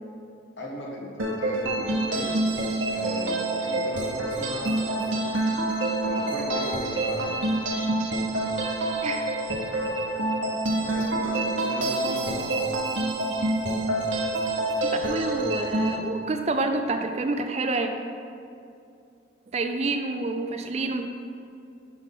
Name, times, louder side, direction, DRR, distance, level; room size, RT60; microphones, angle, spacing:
voice 1, 0.6-2.4 2.9-5.2 6.0-7.3 10.8-12.6, equal, 70° left, -2 dB, 1.2 m, -37 dB
sound 1, 1.2-16.0, right 2 dB, 75° right, 0.8 m, -27 dB
voice 2, 14.8-17.9 19.5-21.1, right 3 dB, 35° right, 6 dB, 0.3 m, -28 dB
5.7 x 4.0 x 5.6 m, 2.5 s
head